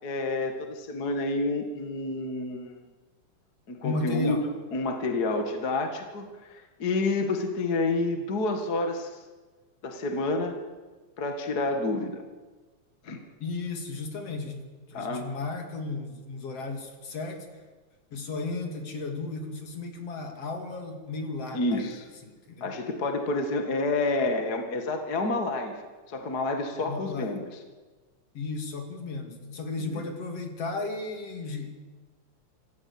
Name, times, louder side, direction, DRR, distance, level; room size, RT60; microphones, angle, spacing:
voice 1, 0.0-2.7 3.7-4.4 4.7-9.2 9.8-10.6 11.2-12.2 13.0-13.2 14.9-15.2 21.5-22.0 22.6-25.8 26.1-27.4 29.8-30.0, left 2 dB, 35° left, 5 dB, 2.1 m, -29 dB
voice 2, 3.8-4.4 13.4-17.5 18.1-21.9 22.2-22.7 26.8-27.3 28.3-31.7, left 3 dB, 55° left, 5 dB, 3.4 m, -34 dB
26.0 x 15.0 x 8.7 m, 1.3 s
omnidirectional pair, 3.4 m